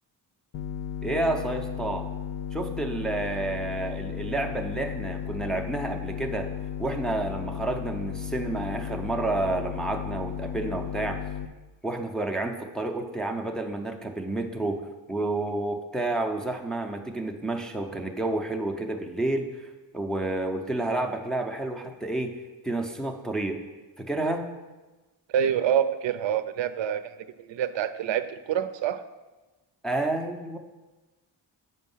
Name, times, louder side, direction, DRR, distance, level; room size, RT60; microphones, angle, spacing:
sound 1, 0.5-11.5, left 8 dB, 85° left, 0.5 m, -34 dB
voice 1, 1.0-2.1 2.5-6.5 6.8-11.2 11.8-19.6 19.9-22.4 22.6-23.6 24.0-24.5 29.8-30.6, right 2 dB, ahead, 2 dB, 0.5 m, -30 dB
voice 2, 25.3-27.1 27.5-29.0, right 9 dB, 75° right, 11 dB, 0.6 m, -26 dB
8.5 x 5.4 x 5.5 m, 1.2 s
wide cardioid pair, 155°, 45 cm